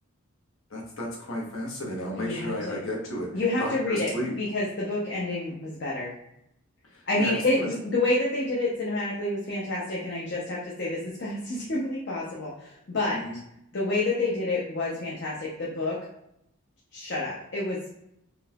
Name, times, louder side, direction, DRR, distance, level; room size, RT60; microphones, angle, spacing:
voice 1, 0.7-4.3 6.9-7.7 13.1-13.4, left 1 dB, 75° left, -2 dB, 1.0 m, -33 dB
voice 2, 2.2-2.8 3.3-4.1 4.4-6.1 7.1-13.2 13.7-16.0 16.9-17.9, left 2 dB, 55° left, -5 dB, 0.6 m, -28 dB
3.8 x 2.7 x 2.3 m, 0.78 s
head